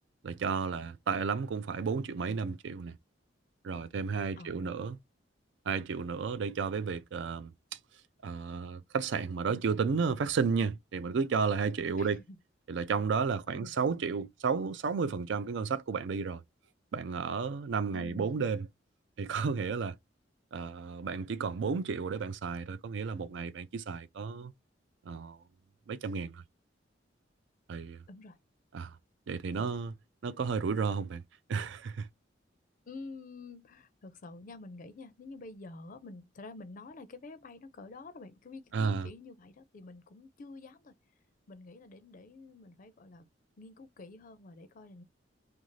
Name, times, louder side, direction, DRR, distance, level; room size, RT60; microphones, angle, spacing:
voice 1, 0.2-3.0 3.6-5.0 5.7-7.5 8.2-12.2 12.7-16.4 16.9-18.7 19.2-20.0 20.5-24.5 25.1-25.4 25.9-26.4 27.7-28.0 28.7-28.9 29.3-29.9 30.2-31.2 31.5-32.1 38.7-39.1, right 5 dB, 70° right, 0.4 m, -32 dB
voice 2, 4.4-4.9 12.0-12.4 13.5-13.7 17.9-18.3 28.1-28.4 32.9-40.9 41.5-43.3 43.6-45.0, left 3 dB, 45° left, 0.4 m, -48 dB
2.5 x 2.3 x 3.1 m
head